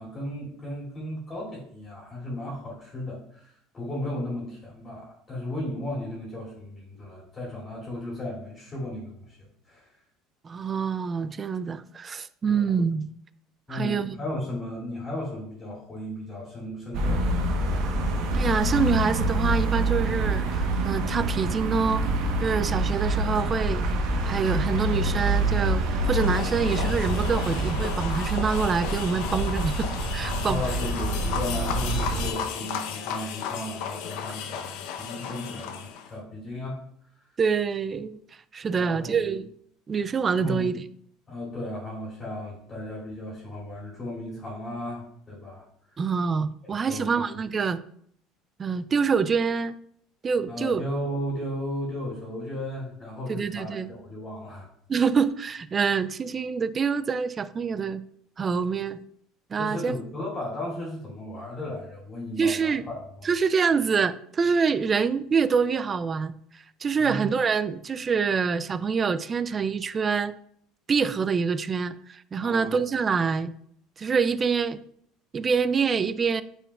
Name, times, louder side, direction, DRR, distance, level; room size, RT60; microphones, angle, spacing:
voice 1, 0.0-9.9 12.5-12.7 13.7-17.8 30.4-36.8 38.8-39.3 40.4-40.7 41.3-45.7 46.6-47.3 50.5-54.7 59.6-63.4 67.0-67.3 72.4-72.8, left 1 dB, 20° left, 2.5 m, -35 dB
voice 2, 10.4-13.1 13.7-14.1 18.3-22.1 22.4-23.8 24.2-30.6 37.4-38.2 38.5-39.5 39.9-40.7 46.0-47.8 48.6-49.7 50.2-50.8 53.3-53.9 54.9-58.0 58.4-59.0 59.5-59.9 62.4-62.8 63.2-66.3 66.8-70.3 70.9-73.5 74.0-74.8 75.3-76.4, right 5 dB, 25° right, 0.3 m, -26 dB
sound 1, 16.9-32.3, right 1 dB, 60° right, 1.0 m, -26 dB
sound 2, 26.0-36.1, left 8 dB, 75° left, 0.7 m, -34 dB
8.7 x 4.7 x 2.3 m
cardioid pair, 140°, 0 cm